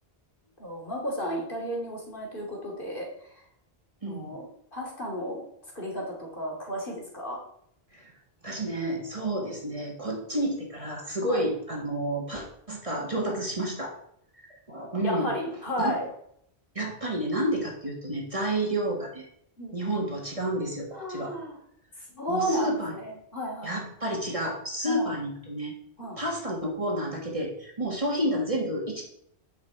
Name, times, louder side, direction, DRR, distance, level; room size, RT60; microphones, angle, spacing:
voice 1, 0.6-3.3 4.0-4.5 4.7-5.4 5.7-7.4 11.2-11.4 15.0-16.1 19.6-19.8 20.9-21.6 22.1-23.8 24.8-25.1 26.0-26.2 27.8-27.9, equal, 55° left, -2 dB, 2.8 m, -33 dB
voice 2, 4.0-4.3 7.9-8.1 8.4-13.9 14.4-15.3 15.8-16.0 16.8-19.3 19.7-21.3 22.3-22.9 23.6-25.7 26.2-29.0, right 1 dB, 30° right, -1 dB, 1.7 m, -30 dB
9.8 x 5.3 x 4.9 m, 0.70 s
omnidirectional pair, 1.1 m